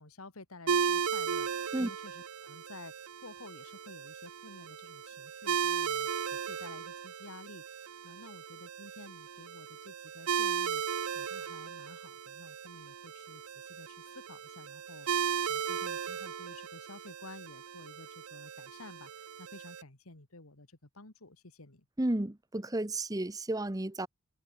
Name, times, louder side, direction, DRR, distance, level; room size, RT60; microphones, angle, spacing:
voice 1, 0.0-21.9, left 2 dB, 80° left, 2.5 m, -52 dB
sound 1, 0.7-19.8, right 7 dB, 85° right, 0.7 m, -36 dB
voice 2, 22.0-24.1, right 1 dB, 15° right, 0.8 m, -32 dB
head